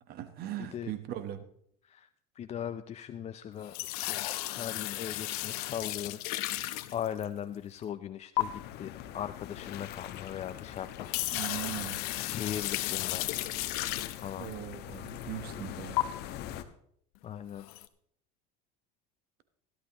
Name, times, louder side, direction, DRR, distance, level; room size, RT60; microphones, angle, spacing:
voice 1, 0.1-1.5 11.3-12.0 14.4-16.0, right 12 dB, 55° right, 1.1 m, -39 dB
voice 2, 2.3-6.2 6.7-11.1 12.2-13.3 14.2-14.5 17.2-17.7, left 9 dB, 35° left, 0.5 m, -39 dB
sound 1, 3.6-7.5 8.4-8.5 10.4-10.5 10.9-14.5 15.1-15.2 16.0-16.1 17.6-17.9, left 18 dB, 75° left, 0.9 m, -34 dB
sound 2, 8.4-16.6, left 11 dB, 55° left, 1.2 m, -43 dB
16.5 x 11.5 x 3.0 m
supercardioid pair, 95°, 20 cm